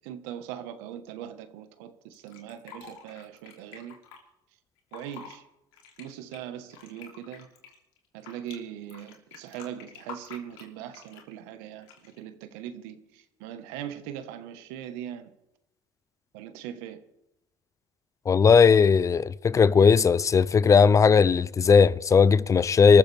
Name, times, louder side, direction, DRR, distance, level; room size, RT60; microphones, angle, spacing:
voice 1, 0.0-3.9 4.9-5.4 6.0-7.5 8.1-15.3 16.3-17.0, right 10 dB, 85° right, 1.5 m, -40 dB
Fill (with liquid), 2.1-4.2 4.8-5.4 5.7-8.6 8.9-11.3 11.8-12.2, left 6 dB, 90° left, 3.1 m, -47 dB
voice 2, 18.3-23.0, left 6 dB, 30° left, 0.5 m, -18 dB
25.0 x 14.5 x 3.5 m
supercardioid pair, 95°, 11 cm